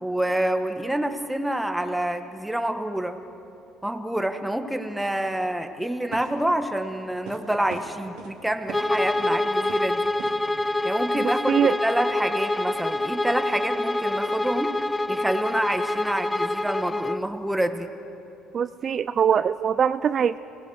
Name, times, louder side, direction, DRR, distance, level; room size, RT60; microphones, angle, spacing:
voice 1, 0.0-3.2 3.8-10.1 10.8-14.8 15.1-17.9, right 1 dB, 5° right, 6 dB, 1.5 m, -27 dB
sound 1, 5.0-5.1 6.1-6.5 7.3-7.4 7.7-8.3 8.7-8.9 9.2-9.4 9.7-9.9 10.2-10.4, right 8 dB, 80° right, 2.1 m, -40 dB
Bowed string instrument, 8.7-17.2, left 2 dB, 10° left, 0.4 m, -26 dB
voice 2, 18.5-20.4, right 8 dB, 50° right, 13 dB, 0.4 m, -22 dB
27.0 x 18.5 x 6.3 m, 2.9 s
supercardioid pair, 85°, 0 cm